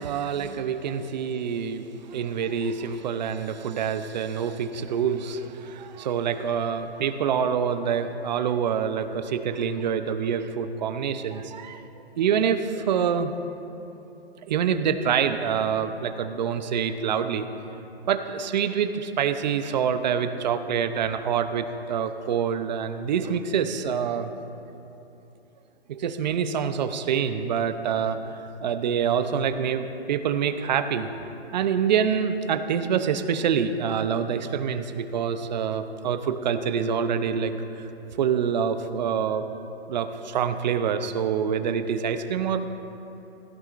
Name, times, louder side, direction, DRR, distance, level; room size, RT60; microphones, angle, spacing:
voice 1, 0.0-11.9 12.2-13.3 14.5-17.5 18.1-24.3 25.9-31.1 31.5-37.5 37.8-39.4 39.9-42.8, right 7 dB, 45° right, 10 dB, 0.7 m, -26 dB
16.0 x 15.0 x 2.5 m, 2.9 s
hypercardioid pair, 155°, 32 cm